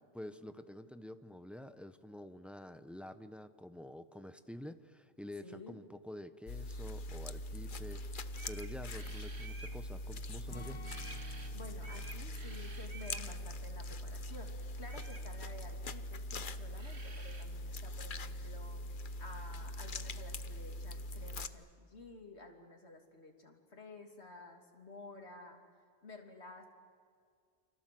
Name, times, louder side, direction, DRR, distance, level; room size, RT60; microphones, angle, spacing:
voice 1, 0.0-8.2 8.5-10.8, left 1 dB, ahead, 10 dB, 0.8 m, -48 dB
voice 2, 5.4-5.8 11.5-18.8 19.2-25.6 26.0-26.7, left 2 dB, 75° left, 2 dB, 3.2 m, -52 dB
sound 1, 6.5-21.5, left 1 dB, 50° left, 1.0 m, -42 dB
sound 2, 7.9-8.0 8.3-9.8 10.8-11.5 11.8-13.3 14.8-15.3 16.5-16.6 16.8-17.5, right 3 dB, 70° right, 2.3 m, -52 dB
Acoustic guitar, 10.5-16.4 16.7-16.9 17.3-17.8, left 2 dB, 25° left, 1.9 m, -57 dB
29.5 x 25.5 x 7.7 m, 2.1 s
omnidirectional pair, 1.1 m